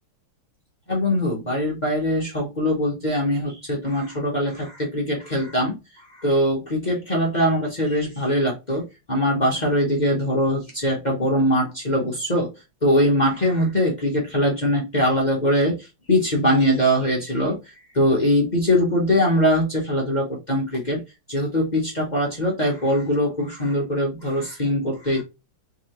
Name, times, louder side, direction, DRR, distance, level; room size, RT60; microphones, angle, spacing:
voice 1, 0.9-12.5 12.8-21.0 21.3-25.2, equal, 35° left, 0.7 m, -22 dB
3.7 x 3.1 x 2.9 m
omnidirectional pair, 2.3 m